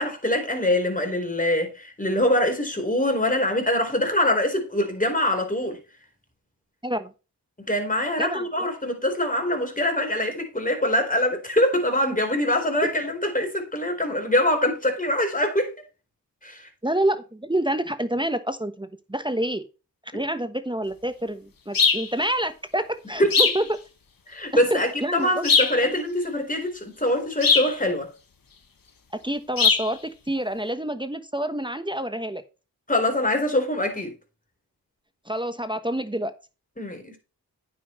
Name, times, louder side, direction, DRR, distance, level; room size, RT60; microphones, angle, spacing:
voice 1, 0.0-5.8 7.7-15.7 16.4-16.7 23.2-23.3 24.3-28.1 32.9-34.1 36.8-37.2, left 1 dB, 20° left, 4.2 m, -24 dB
voice 2, 16.8-19.6 20.1-23.8 24.7-25.5 25.8-25.9 29.2-32.4 35.3-36.3, right 1 dB, 10° right, 1.2 m, -28 dB
sound 1, 21.7-22.1 23.3-23.7 25.4-25.8 27.4-27.7 29.6-29.9, left 5 dB, 55° left, 1.7 m, -19 dB
9.4 x 7.5 x 3.2 m
cardioid pair, 40°, 40 cm